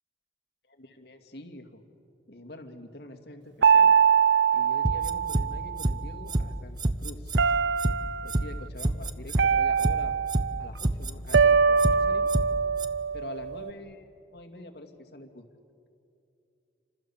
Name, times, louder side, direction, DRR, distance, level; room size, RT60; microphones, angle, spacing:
voice 1, 0.7-1.8 2.3-3.9 4.5-7.5 8.2-10.2 10.6-12.3 13.1-15.4, left 1 dB, 60° left, 4 dB, 2.5 m, -45 dB
sound 1, 3.6-6.0 7.4-8.4 9.4-10.7 11.3-13.7, right 6 dB, 80° right, 0.6 m, -23 dB
sound 2, 4.8-5.4 5.8-5.9 6.3-6.4 6.8-7.4 7.8-7.9 8.3-8.4 8.8-9.4 9.8-9.9 10.3-10.4 10.8-11.4 11.8-11.9 12.3-12.4 12.8-12.9, right 1 dB, 25° right, 0.9 m, -26 dB
29.5 x 25.5 x 7.4 m, 2.6 s
head